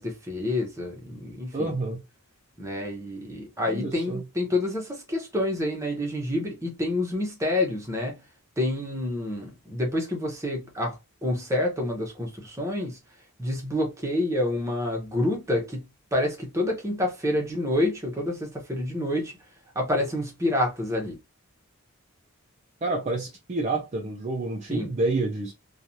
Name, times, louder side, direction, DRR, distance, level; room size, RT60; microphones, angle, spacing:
voice 1, 0.0-1.7 2.6-8.2 8.6-11.0 11.2-13.0 13.4-19.3 19.7-21.2 24.7-24.9, left 1 dB, 15° right, 0.8 m, -28 dB
voice 2, 1.5-2.0 3.7-4.2 22.8-25.5, right 2 dB, 30° right, 0.4 m, -28 dB
3.1 x 2.3 x 2.6 m
head